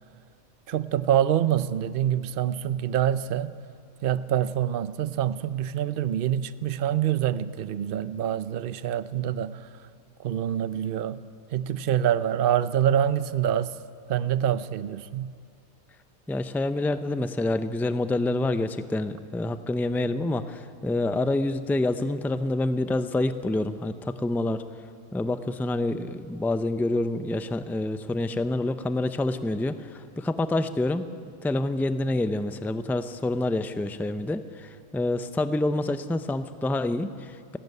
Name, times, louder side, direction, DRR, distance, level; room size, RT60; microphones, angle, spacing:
voice 1, 0.7-3.5 4.0-9.7 10.2-11.2 11.5-13.8 14.1-15.3, right 10 dB, 50° right, 0.7 m, -26 dB
voice 2, 16.3-24.6 25.1-31.1 31.4-37.6, left 2 dB, 5° left, 0.3 m, -27 dB
30.0 x 12.0 x 9.5 m
omnidirectional pair, 1.4 m